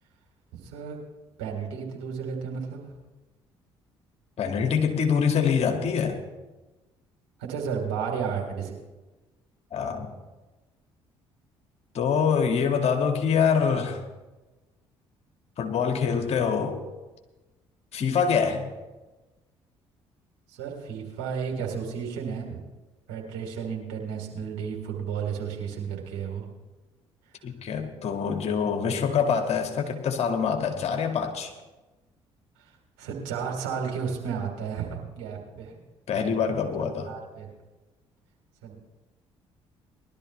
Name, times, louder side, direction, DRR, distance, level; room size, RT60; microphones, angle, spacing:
voice 1, 0.5-1.0 1.4-2.8 7.4-8.8 20.5-22.6 23.1-26.5 33.0-35.7 36.8-37.5 38.6-38.7, right 6 dB, 75° right, 0 dB, 3.0 m, -33 dB
voice 2, 4.4-6.2 9.7-10.1 11.9-14.0 15.6-16.8 17.9-18.7 27.4-31.5 36.1-37.1, left 6 dB, 50° left, 4 dB, 2.1 m, -25 dB
20.0 x 12.5 x 3.3 m, 1.2 s
hypercardioid pair, 50°, 14 cm